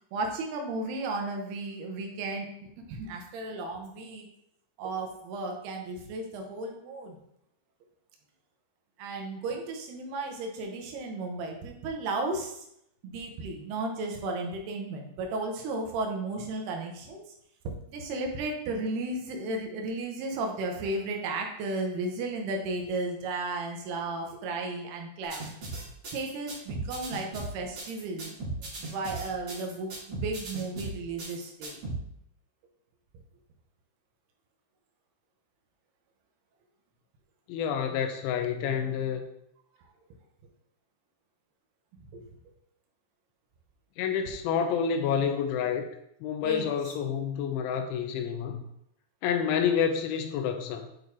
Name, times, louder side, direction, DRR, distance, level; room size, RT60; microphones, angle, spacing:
voice 1, 0.1-2.5 2.9-4.3 4.8-7.2 9.0-12.5 13.0-17.2 17.6-25.4 26.1-28.4 28.9-31.8 42.1-42.2 46.4-46.7, right 2 dB, 70° right, 2 dB, 2.7 m, -34 dB
sound 1, 25.3-32.0, right 2 dB, 45° right, 2.4 m, -37 dB
voice 2, 37.5-39.3 44.0-45.9 46.2-48.6 49.2-50.9, left 7 dB, 85° left, 5 dB, 3.1 m, -28 dB
8.9 x 4.0 x 3.6 m, 0.74 s
omnidirectional pair, 5.3 m